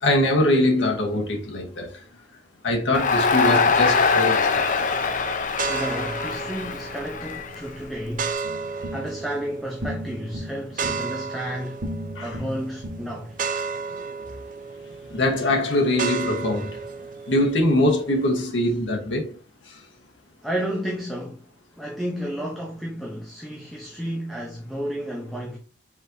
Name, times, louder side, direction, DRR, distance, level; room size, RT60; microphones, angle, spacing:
voice 1, 0.0-1.9 2.6-4.7 12.2-12.4 15.1-16.8 17.3-19.4, left 1 dB, 85° left, 1.2 m, -22 dB
Crowd, 2.9-8.1, left 4 dB, 45° left, 0.5 m, -23 dB
sound 1, 5.5-18.4, right 5 dB, 45° right, 0.4 m, -34 dB
voice 2, 5.6-8.5 8.9-11.8 12.2-13.4 20.4-21.5 21.8-25.6, equal, ahead, 0.7 m, -32 dB
sound 2, 8.4-13.7, equal, 90° right, 0.9 m, -37 dB
4.9 x 4.0 x 2.6 m
head